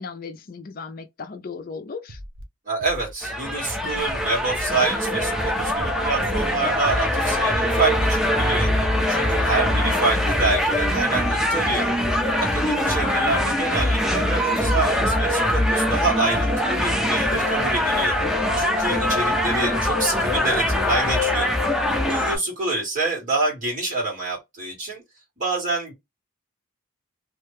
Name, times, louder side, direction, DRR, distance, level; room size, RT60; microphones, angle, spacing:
voice 1, 0.0-2.2 14.1-14.6, left 4 dB, 45° left, 0.4 m, -36 dB
Scratching (performance technique), 2.1-2.4 2.8-3.1 3.8-4.1 4.5-4.8 5.6-5.9 6.2-6.6 7.3-7.6 8.0-8.3, equal, 80° right, 0.8 m, -39 dB
voice 2, 2.7-8.7 9.1-11.9 12.4-18.2 18.6-21.5 22.0-25.0 25.4-25.9, right 3 dB, 40° right, 2.0 m, -27 dB
sound 1, 3.2-22.4, left 1 dB, ahead, 0.6 m, -22 dB
3.1 x 2.3 x 3.2 m
head